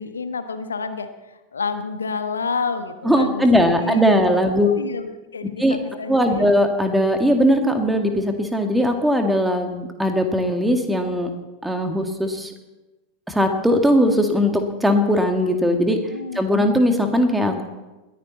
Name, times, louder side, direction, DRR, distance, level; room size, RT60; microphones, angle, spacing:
voice 1, 0.0-6.5 16.1-16.4, left 5 dB, 75° left, 9 dB, 1.2 m, -30 dB
voice 2, 3.1-4.7 5.6-5.8 6.1-11.3 11.6-12.5 13.3-16.1 16.4-17.6, equal, 5° right, 5 dB, 2.0 m, -19 dB
21.0 x 14.5 x 4.2 m, 1.1 s
figure-of-eight pair, 90°, 0 cm